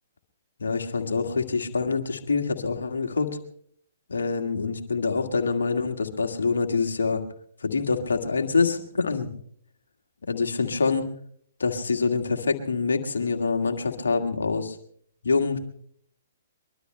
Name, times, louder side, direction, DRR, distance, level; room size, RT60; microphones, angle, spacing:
voice 1, 0.6-3.3 4.1-7.2 7.6-9.3 10.3-11.1 11.6-14.8 15.2-15.6, left 4 dB, 70° left, 4 dB, 1.7 m, -25 dB
23.5 x 22.0 x 2.2 m, 0.64 s
figure-of-eight pair, 120°, 0 cm